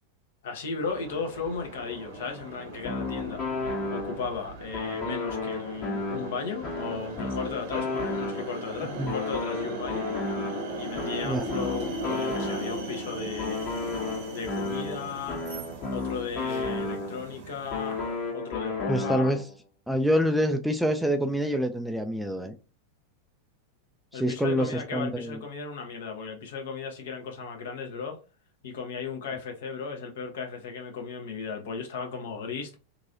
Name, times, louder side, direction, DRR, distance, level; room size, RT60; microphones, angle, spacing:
voice 1, 0.4-3.4 3.7-10.1 10.8-13.6 14.3-15.4 15.9-18.0 18.3-19.3 24.1-28.2 28.6-32.7, left 5 dB, 60° left, 0.8 m, -35 dB
sound 1, 0.7-18.2, right 1 dB, 50° right, 0.8 m, -39 dB
sound 2, 2.8-4.4 4.7-8.7 9.1-12.9 13.4-17.3 17.7-19.5, left 3 dB, 40° left, 1.3 m, -33 dB
voice 2, 18.9-19.4 19.9-22.5 24.1-25.4, equal, ahead, 0.3 m, -26 dB
3.0 x 2.6 x 2.6 m
figure-of-eight pair, 90°, 0 cm